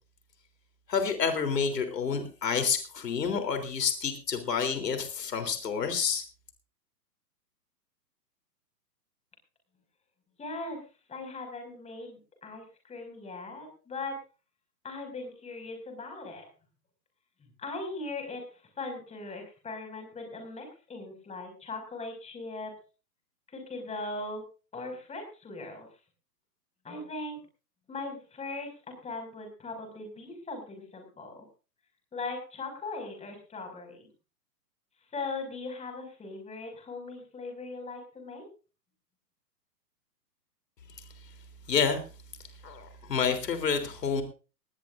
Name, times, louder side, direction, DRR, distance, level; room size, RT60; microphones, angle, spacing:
voice 1, 0.9-6.2 41.7-42.0 42.6-44.2, left 6 dB, 70° left, 7 dB, 3.5 m, -29 dB
voice 2, 10.4-10.8 11.1-14.2 14.8-16.4 17.4-22.7 23.5-24.4 24.7-25.9 26.8-27.4 27.9-31.5 32.1-34.1 35.1-38.4, left 3 dB, 15° left, 4 dB, 5.9 m, -39 dB
19.0 x 18.5 x 2.6 m, 0.35 s
hypercardioid pair, 125°, 50 cm